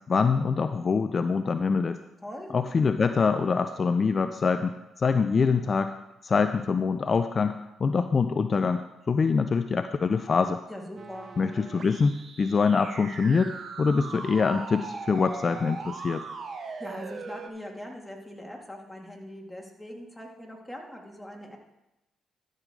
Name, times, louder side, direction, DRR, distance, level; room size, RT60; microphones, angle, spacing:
voice 1, 0.1-2.0 2.5-5.9 6.2-7.5 7.8-10.6 11.4-16.2, left 5 dB, 45° left, 10 dB, 0.4 m, -25 dB
voice 2, 2.2-2.6 10.7-11.3 16.6-21.6, equal, 5° left, 0 dB, 2.5 m, -41 dB
sound 1, 11.0-17.5, right 4 dB, 55° right, 1.0 m, -40 dB
13.0 x 6.4 x 3.8 m, 0.93 s
supercardioid pair, 55°, 0 cm